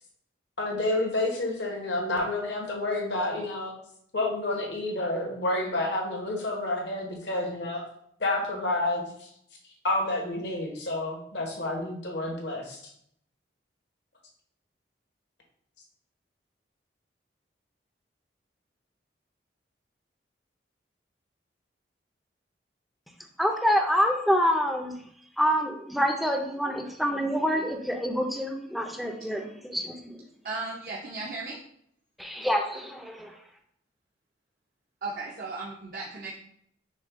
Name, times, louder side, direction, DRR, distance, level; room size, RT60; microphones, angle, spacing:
voice 1, 0.6-3.7 4.1-7.8 8.2-9.3 9.8-12.8, left 2 dB, 75° left, 0 dB, 1.2 m, -29 dB
voice 2, 23.4-25.0 25.4-30.2 32.2-33.3, equal, ahead, 3 dB, 0.5 m, -27 dB
voice 3, 30.4-31.6 35.0-36.3, right 3 dB, 50° right, -4 dB, 0.6 m, -35 dB
6.2 x 2.2 x 3.6 m, 0.68 s
head